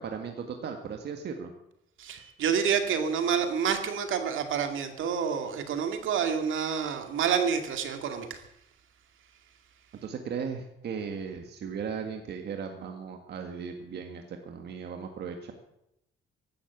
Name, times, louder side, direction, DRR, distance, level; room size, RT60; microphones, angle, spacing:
voice 1, 0.0-1.5 10.0-15.5, right 6 dB, 50° right, 4 dB, 1.7 m, -37 dB
voice 2, 2.0-8.4, right 7 dB, 70° right, 6 dB, 2.2 m, -28 dB
16.0 x 12.0 x 7.2 m, 0.82 s
cardioid pair, 160°, 21 cm